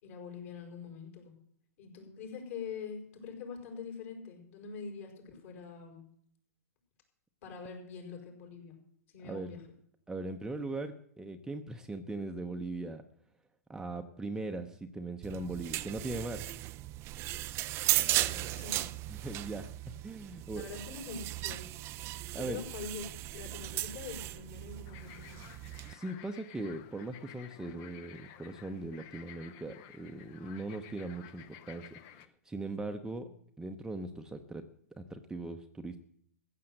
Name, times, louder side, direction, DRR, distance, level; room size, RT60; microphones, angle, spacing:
voice 1, 0.0-1.4 1.8-6.0 7.4-8.8 9.1-9.6 18.1-18.9 20.6-21.7 22.4-23.1 23.3-25.4, left 6 dB, 55° left, 3 dB, 5.4 m, -44 dB
voice 2, 9.2-9.5 10.1-13.0 13.7-16.5 19.1-19.7 20.0-20.7 22.3-22.6 25.9-33.3 33.6-34.6 35.0-36.0, right 2 dB, 5° right, 5 dB, 0.8 m, -39 dB
sound 1, 15.2-25.9, right 17 dB, 30° right, 0.5 m, -36 dB
sound 2, 24.9-32.3, left 11 dB, 35° left, 0.8 m, -53 dB
15.0 x 7.7 x 7.8 m, 0.64 s
hypercardioid pair, 125°, 9 cm